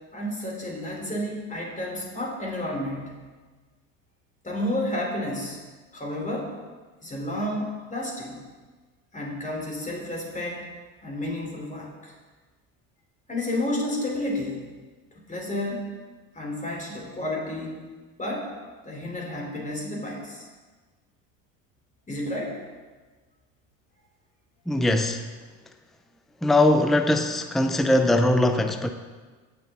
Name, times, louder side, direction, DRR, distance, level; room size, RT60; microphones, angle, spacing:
voice 1, 0.1-3.2 4.4-5.6 5.9-6.5 7.0-8.4 9.1-10.7 11.0-12.1 13.3-14.6 15.3-15.9 16.3-17.8 18.2-18.5 18.8-20.5 22.1-22.6, left 1 dB, 20° left, -1 dB, 3.3 m, -31 dB
voice 2, 24.7-25.2 26.4-28.9, left 1 dB, ahead, 7 dB, 0.6 m, -21 dB
16.5 x 6.2 x 3.7 m, 1.4 s
supercardioid pair, 85°, 41 cm